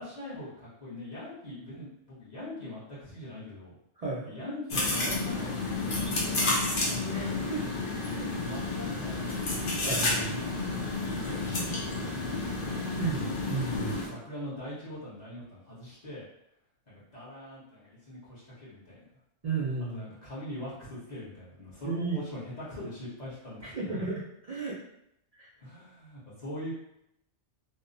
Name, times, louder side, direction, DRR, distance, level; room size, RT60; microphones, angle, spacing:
voice 1, 0.0-3.7 4.2-7.4 8.4-9.7 11.1-12.2 14.1-16.2 16.9-19.1 19.9-24.0 24.6-24.7 25.6-26.7, left 1 dB, 40° left, -9 dB, 1.1 m, -42 dB
voice 2, 4.0-4.3 7.1-7.6 8.2-8.3 9.8-10.4 13.0-14.1 19.4-20.1 21.8-22.2 23.7-24.8 25.3-25.5, right 4 dB, 65° right, -6 dB, 0.3 m, -34 dB
sound 1, 4.7-14.1, left 2 dB, 55° left, 0.7 m, -31 dB
2.9 x 2.0 x 2.5 m, 0.79 s
omnidirectional pair, 1.2 m